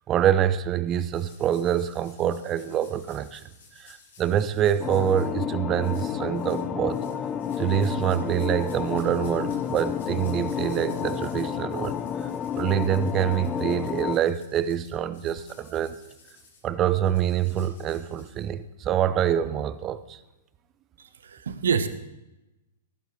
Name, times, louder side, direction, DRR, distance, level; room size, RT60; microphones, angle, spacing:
voice 1, 0.1-3.5 3.8-7.0 7.6-16.0 16.6-20.2, right 10 dB, 30° right, 15 dB, 0.7 m, -26 dB
sound 1, 0.9-5.3 5.8-6.6 6.9-18.8, left 4 dB, 55° left, 4.1 m, -54 dB
sound 2, 4.8-14.2, left 8 dB, 20° left, 0.7 m, -30 dB
voice 2, 21.0-21.9, right 6 dB, 70° right, 12 dB, 1.1 m, -27 dB
18.0 x 11.5 x 3.3 m, 0.97 s
figure-of-eight pair, 110°, 0 cm